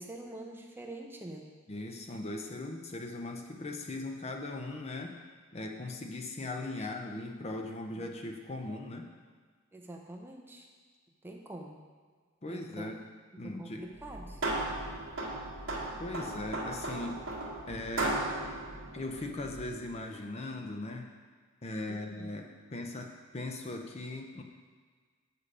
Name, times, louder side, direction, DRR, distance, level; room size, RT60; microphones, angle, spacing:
voice 1, 0.0-1.5 6.8-6.9 8.0-8.1 9.7-10.7 11.2-11.8 12.5-12.9 13.4-14.4 21.9-22.3, right 1 dB, 10° right, 1 dB, 0.6 m, -45 dB
voice 2, 1.7-5.2 5.5-9.1 12.4-13.0 13.4-13.9 16.0-17.2 17.7-18.2 18.9-21.1 21.6-24.4, left 2 dB, 30° left, 3 dB, 0.6 m, -39 dB
sound 1, 14.0-19.8, right 2 dB, 65° right, 1.6 m, -36 dB
6.7 x 6.6 x 5.0 m, 1.6 s
head